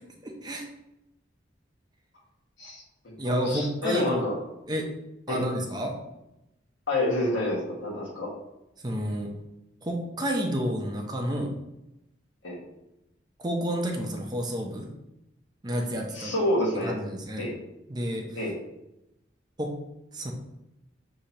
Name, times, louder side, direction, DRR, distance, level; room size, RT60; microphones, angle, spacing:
voice 1, 0.2-0.6 3.2-4.2 4.7-4.9 5.3-5.9 8.8-9.3 9.8-11.5 13.4-14.9 15.6-16.3 16.8-17.5 17.9-18.2 19.6-19.7 20.1-20.3, equal, 20° right, 2 dB, 0.5 m, -30 dB
voice 2, 2.6-4.4 5.3-5.5 6.9-8.3 12.4-12.6 16.1-17.0 17.4-17.5 18.3-18.6, left 1 dB, 80° left, -4 dB, 1.5 m, -28 dB
6.4 x 2.8 x 2.8 m, 0.90 s
head